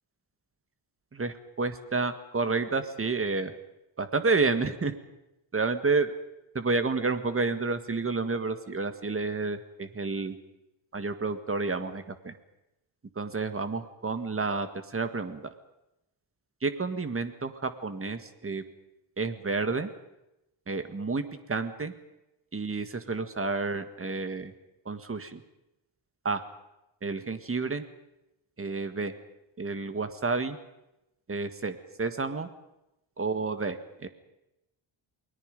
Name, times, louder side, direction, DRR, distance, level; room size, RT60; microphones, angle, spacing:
voice 1, 1.1-3.5 4.0-4.9 5.5-6.1 6.5-10.3 10.9-12.3 13.1-15.5 16.6-18.6 19.2-19.9 20.7-21.9 22.5-24.5 24.8-25.4 26.2-26.4 27.0-27.8 28.6-29.1 29.6-30.6 31.3-32.5 33.2-33.8 34.0-34.1, right 4 dB, 30° right, 9 dB, 1.7 m, -30 dB
29.0 x 21.0 x 5.3 m, 0.92 s
wide cardioid pair, 130°, 47 cm